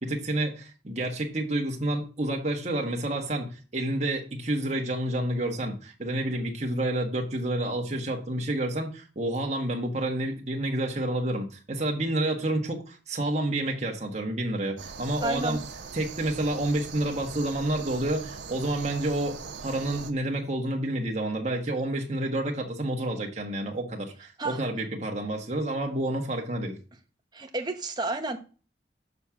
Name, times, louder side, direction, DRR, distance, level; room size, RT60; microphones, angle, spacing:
voice 1, 0.0-15.6 15.9-26.8, right 1 dB, 40° right, 1.4 m, -29 dB
sound 1, 14.8-20.1, right 5 dB, 85° right, 0.9 m, -41 dB
voice 2, 15.2-15.6 24.4-24.6 27.3-28.4, right 2 dB, 25° right, 0.9 m, -30 dB
6.7 x 5.9 x 3.7 m
head